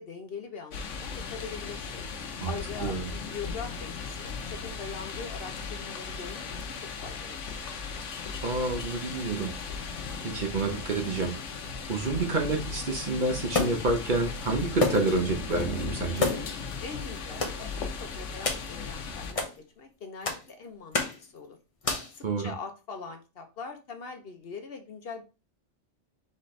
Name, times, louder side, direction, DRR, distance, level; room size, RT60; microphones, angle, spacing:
voice 1, 0.0-2.0 2.4-6.7 7.0-7.4 16.8-19.5 19.8-21.6 22.1-25.2, left 5 dB, 55° left, 5 dB, 0.9 m, -42 dB
sound 1, 0.7-19.3, left 5 dB, 80° left, 1.1 m, -37 dB
voice 2, 2.4-3.1 8.4-9.5 10.2-11.6 11.9-16.3 22.2-22.5, right 3 dB, 45° right, 3 dB, 0.9 m, -29 dB
sound 2, 13.5-14.0 14.8-15.2 15.5-15.6 16.2-16.6 17.4-17.6 18.4-18.7 19.3-19.5 20.2-20.5 20.9-21.2 21.8-22.2, left 3 dB, 30° left, 0.8 m, -29 dB
4.2 x 3.9 x 3.2 m, 0.30 s
omnidirectional pair, 1.2 m